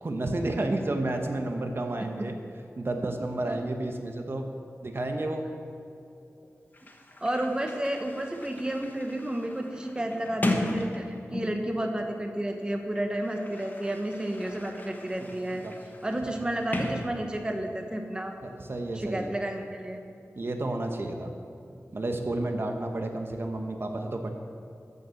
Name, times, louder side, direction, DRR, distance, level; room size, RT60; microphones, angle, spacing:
voice 1, 0.0-2.3 2.8-4.5 4.8-5.5 15.2-15.7 16.2-16.4 18.4-19.3 20.4-21.3 21.9-24.3, right 2 dB, 50° right, 4 dB, 1.1 m, -31 dB
Sliding door, 6.4-6.5 6.7-11.8 12.7-17.7, left 1 dB, 35° left, 1.3 m, -36 dB
voice 2, 7.2-15.6 16.0-18.3 19.0-20.0, right 1 dB, 15° right, 3 dB, 1.0 m, -31 dB
13.5 x 6.7 x 7.0 m, 2.6 s
wide cardioid pair, 90°, 5 cm